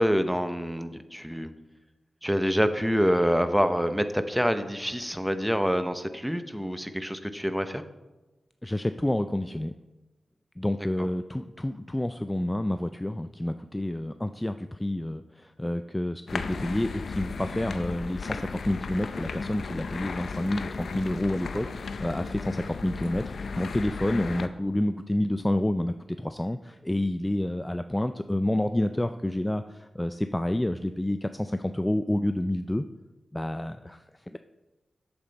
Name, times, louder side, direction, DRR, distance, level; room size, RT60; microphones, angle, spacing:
voice 1, 0.0-1.5 2.2-7.8 11.0-11.1, equal, 5° right, 10 dB, 0.8 m, -26 dB
voice 2, 8.6-9.8 10.6-32.9 33.3-34.4, left 1 dB, 15° left, 9 dB, 0.4 m, -29 dB
sound 1, 16.3-24.5, left 4 dB, 75° left, 0.5 m, -35 dB
8.6 x 7.5 x 4.1 m, 1.1 s
cardioid pair, 45°, 0 cm